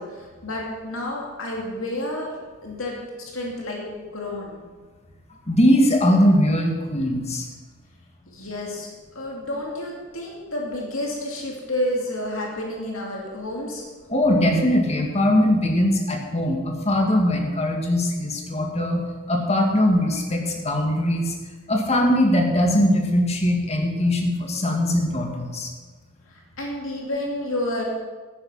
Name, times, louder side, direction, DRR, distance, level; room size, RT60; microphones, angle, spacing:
voice 1, 0.1-2.3 2.6-3.8 4.1-4.6 8.3-8.9 9.1-13.8 26.3-27.8, left 1 dB, 70° left, -1 dB, 2.6 m, -30 dB
voice 2, 5.5-7.5 14.1-19.0 19.3-21.3 21.7-25.7, left 1 dB, 30° left, 1 dB, 2.0 m, -21 dB
13.0 x 10.0 x 5.6 m, 1.3 s
head